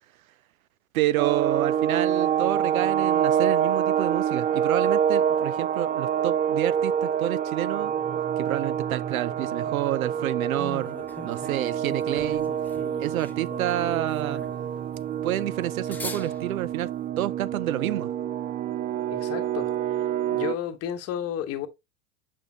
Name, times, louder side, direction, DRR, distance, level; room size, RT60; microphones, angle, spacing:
voice 1, 0.9-7.9 8.4-11.0 11.2-12.5 13.0-14.4 15.2-18.1, right 14 dB, 75° right, 0.5 m, -29 dB
sound 1, 1.2-20.5, right 9 dB, 20° right, 0.4 m, -27 dB
sound 2, 10.6-17.0, left 3 dB, 5° left, 0.7 m, -43 dB
voice 2, 19.1-20.0 20.3-21.7, left 10 dB, 35° left, 1.1 m, -32 dB
7.0 x 5.3 x 2.7 m
figure-of-eight pair, 85°, 42 cm